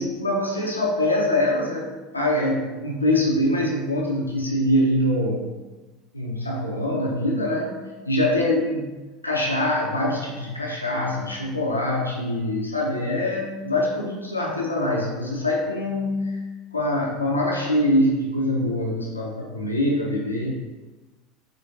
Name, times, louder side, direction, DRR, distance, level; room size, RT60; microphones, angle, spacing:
voice 1, 0.0-5.5 6.1-8.6 8.9-16.4 16.7-20.5, left 1 dB, 85° left, -2 dB, 0.6 m, -24 dB
5.1 x 3.8 x 2.7 m, 1.2 s
figure-of-eight pair, 75°, 0 cm